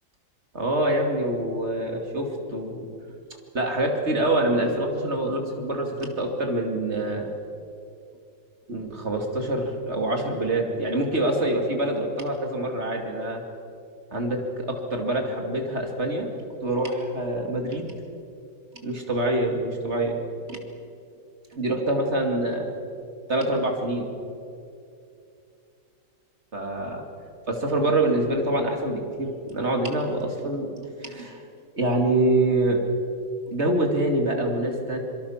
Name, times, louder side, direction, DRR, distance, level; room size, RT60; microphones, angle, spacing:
voice 1, 0.5-2.9 3.5-7.3 8.7-13.4 14.1-16.3 16.6-17.9 18.8-20.2 20.5-20.6 21.5-22.7 23.3-24.1 26.5-27.0 27.5-30.7 31.0-31.4 31.8-32.8 33.5-35.0, right 1 dB, 30° right, 3 dB, 2.7 m, -25 dB
25.5 x 24.5 x 5.9 m, 2.6 s
omnidirectional pair, 2.3 m